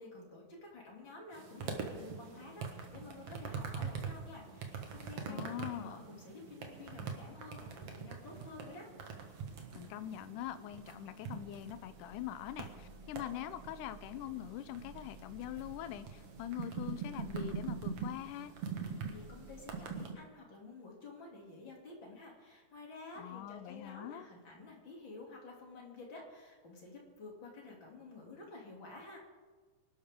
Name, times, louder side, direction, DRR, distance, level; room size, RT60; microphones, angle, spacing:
voice 1, 0.0-8.9 19.1-29.2, left 3 dB, 40° left, -2 dB, 3.4 m, -51 dB
sound 1, 1.3-20.1, right 5 dB, 55° right, 2.3 m, -44 dB
voice 2, 5.3-6.0 9.7-18.5 23.2-24.3, left 12 dB, 85° left, 12 dB, 2.2 m, -43 dB
sound 2, 6.2-20.1, right 2 dB, 30° right, 4.9 m, -60 dB
25.0 x 12.0 x 3.7 m, 1.4 s
omnidirectional pair, 3.6 m